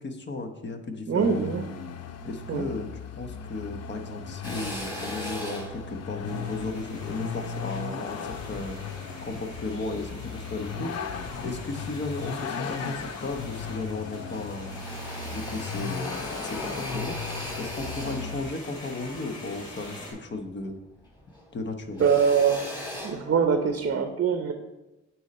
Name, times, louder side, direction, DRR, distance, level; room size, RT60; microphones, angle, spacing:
voice 1, 0.0-1.4 2.2-2.9 3.2-8.8 9.2-14.8 15.2-17.2 17.6-20.8 21.5-22.1, left 3 dB, 35° left, 7 dB, 0.9 m, -35 dB
voice 2, 1.1-1.6 2.5-2.7 22.0-22.7 23.0-24.5, right 6 dB, 45° right, 6 dB, 0.7 m, -23 dB
Vehicle, 1.2-18.4, left 6 dB, 55° left, 0.6 m, -37 dB
Drill, 4.4-9.0 9.5-10.7 11.2-12.1 12.5-12.6 12.8-13.8 14.1-20.8 21.0-23.9, left 1 dB, 15° left, 2.6 m, -40 dB
sound 1, 6.2-20.1, left 1 dB, 85° left, 2.5 m, -44 dB
9.1 x 4.3 x 4.2 m, 1.0 s
cardioid pair, 90°, 30 cm